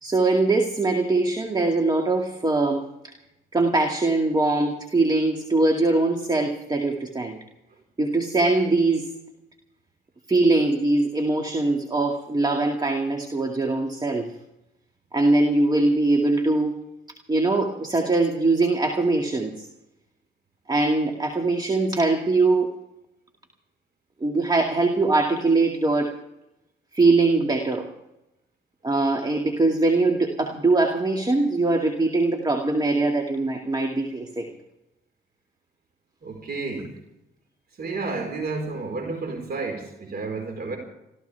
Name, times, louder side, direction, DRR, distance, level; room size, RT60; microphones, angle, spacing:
voice 1, 0.0-2.8 3.5-7.4 8.0-9.1 10.3-14.3 15.1-16.7 17.3-19.5 20.7-22.7 24.2-26.2 26.9-27.9 28.8-34.5, right 2 dB, 20° right, 3 dB, 2.3 m, -22 dB
voice 2, 36.2-36.9 37.8-40.8, right 3 dB, 55° right, 3 dB, 4.7 m, -31 dB
27.0 x 15.0 x 3.5 m, 0.89 s
cardioid pair, 90°, 20 cm